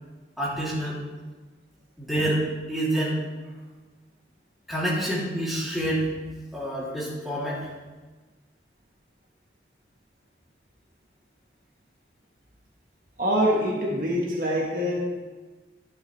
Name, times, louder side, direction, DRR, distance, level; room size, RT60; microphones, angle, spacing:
voice 1, 0.4-1.0 2.0-3.2 4.7-6.1 6.5-7.6, right 1 dB, ahead, -8 dB, 3.0 m, -27 dB
voice 2, 13.2-15.0, equal, 50° right, -2 dB, 1.5 m, -24 dB
11.5 x 10.5 x 3.3 m, 1.3 s
head